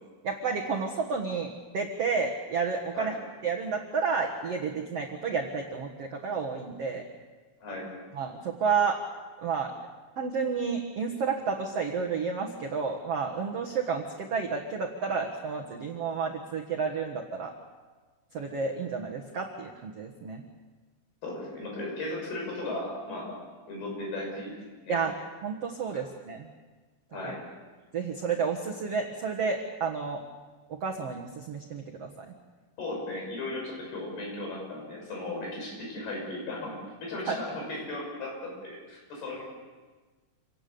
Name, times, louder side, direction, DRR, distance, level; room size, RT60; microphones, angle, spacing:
voice 1, 0.2-3.1 3.4-7.0 8.1-9.0 9.4-9.7 10.2-17.5 18.3-20.4 24.9-25.1 25.4-26.5 27.9-30.2 30.7-32.3 37.3-37.4, right 5 dB, 60° right, 1 dB, 1.6 m, -31 dB
voice 2, 7.6-8.0 21.2-25.0 25.9-26.0 27.1-27.5 32.8-39.4, left 2 dB, 60° left, 0 dB, 7.9 m, -36 dB
28.0 x 18.0 x 7.0 m, 1.3 s
omnidirectional pair, 5.0 m